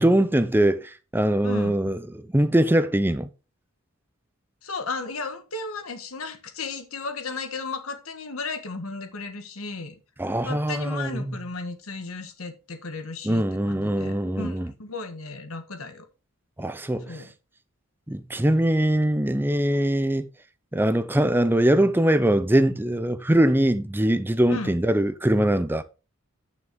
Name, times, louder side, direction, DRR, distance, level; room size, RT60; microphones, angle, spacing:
voice 1, 0.0-3.3 10.2-11.4 13.2-14.7 16.6-17.2 18.1-20.3 20.7-25.8, right 1 dB, 10° right, 0.5 m, -22 dB
voice 2, 4.6-9.9 10.4-16.0 17.1-17.3 24.5-24.7, left 3 dB, 80° left, 1.5 m, -35 dB
9.4 x 6.1 x 3.7 m
head